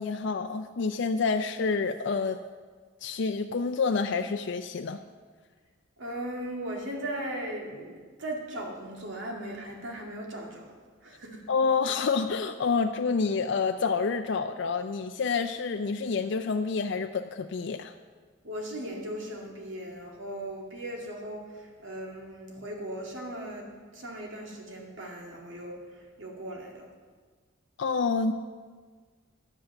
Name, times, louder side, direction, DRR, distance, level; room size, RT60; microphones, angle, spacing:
voice 1, 0.0-2.4 3.0-5.0 11.5-17.9 27.8-28.3, left 4 dB, 65° left, 6 dB, 0.4 m, -28 dB
voice 2, 6.0-10.6 11.0-11.4 18.4-23.7 23.9-25.8 26.2-26.9, right 1 dB, 85° right, 0 dB, 2.2 m, -38 dB
11.0 x 8.2 x 6.6 m, 1.5 s
head